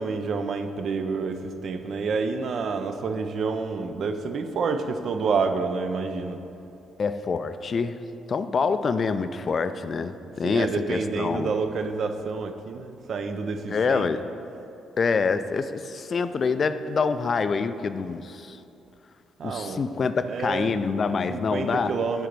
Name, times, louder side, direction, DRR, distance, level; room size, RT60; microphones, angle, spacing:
voice 1, 0.0-6.4 10.4-14.1 19.4-19.8 20.3-20.9 21.3-22.3, right 4 dB, 60° right, 8 dB, 0.5 m, -28 dB
voice 2, 7.0-8.0 8.3-11.5 13.7-14.2 15.0-18.6 19.4-22.0, left 5 dB, 45° left, 11 dB, 0.3 m, -26 dB
8.0 x 3.8 x 6.0 m, 2.8 s
cardioid pair, 90°, 0 cm